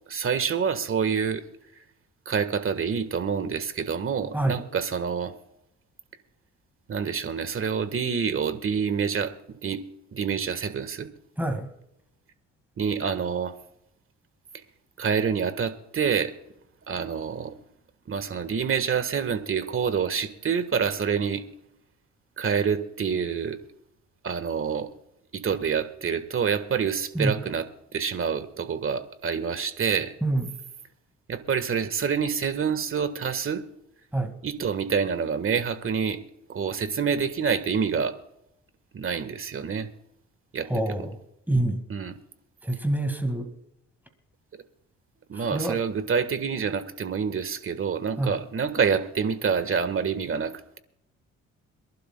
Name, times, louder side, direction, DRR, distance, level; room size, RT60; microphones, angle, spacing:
voice 1, 0.1-1.4 2.2-5.3 6.9-9.8 10.1-11.1 12.8-13.5 15.0-16.3 16.9-17.5 18.1-21.4 22.4-23.6 24.2-24.9 25.3-27.6 27.9-30.1 31.3-33.6 34.4-36.2 36.5-38.1 38.9-39.9 40.5-41.1 41.9-42.2 45.3-50.8, right 6 dB, 45° right, 11 dB, 1.6 m, -27 dB
voice 2, 11.4-11.7 27.2-27.3 30.2-30.5 34.1-34.3 40.7-41.1 41.5-41.8 42.6-43.5 45.4-45.8 48.2-48.3, right 1 dB, 5° right, 6 dB, 2.0 m, -26 dB
27.0 x 11.5 x 2.3 m, 0.81 s
cardioid pair, 90°, 30 cm